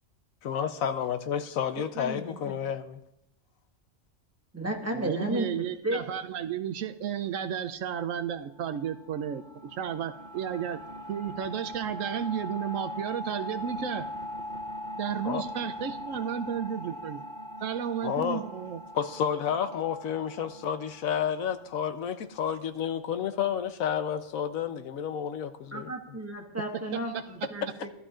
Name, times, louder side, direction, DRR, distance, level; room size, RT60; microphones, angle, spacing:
voice 1, 0.4-3.0 15.2-15.4 18.0-18.4 18.9-26.2, left 8 dB, 85° left, 10 dB, 1.2 m, -31 dB
voice 2, 2.0-2.5 4.5-6.0 25.7-27.9, right 1 dB, 10° right, 0 dB, 1.4 m, -33 dB
voice 3, 4.9-9.4 9.7-10.8 11.1-14.0 15.0-17.2 17.6-18.8 26.7-26.9 27.1-27.2, right 9 dB, 75° right, 9 dB, 1.0 m, -33 dB
sound 1, 8.5-22.0, left 1 dB, 35° right, 1.6 m, -41 dB
18.0 x 12.5 x 2.5 m, 0.82 s
omnidirectional pair, 1.4 m